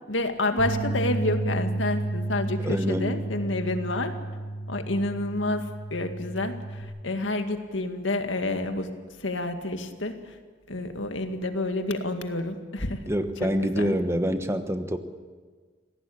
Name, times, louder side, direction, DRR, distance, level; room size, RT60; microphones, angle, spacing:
voice 1, 0.1-4.1 4.7-10.4 10.7-13.0 13.4-14.0, left 2 dB, 80° left, 7 dB, 2.1 m, -29 dB
sound 1, 0.6-6.8, right 2 dB, 15° left, 7.9 m, -32 dB
voice 2, 2.6-3.2 13.1-15.0, equal, 15° right, 9 dB, 1.2 m, -26 dB
26.5 x 17.5 x 8.8 m, 1.5 s
head